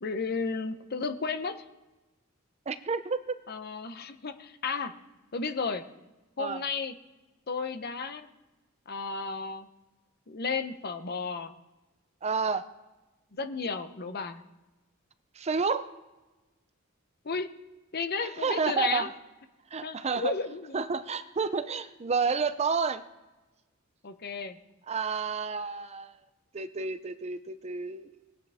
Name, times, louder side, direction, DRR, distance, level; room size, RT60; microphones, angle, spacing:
voice 1, 0.0-1.6 3.5-4.9 5.3-5.8 6.4-7.0 7.5-8.3 8.9-9.7 10.3-11.5 13.3-14.4 17.2-17.5 17.9-19.1 19.8-20.9 24.0-24.6, left 4 dB, 50° left, 9 dB, 0.9 m, -33 dB
voice 2, 2.7-3.3 6.4-6.6 12.2-12.6 15.4-15.9 18.4-19.1 19.7-20.3 20.7-23.0 24.9-26.1 26.5-28.1, right 5 dB, 30° right, 12 dB, 0.5 m, -30 dB
20.5 x 8.7 x 3.6 m, 1.1 s
head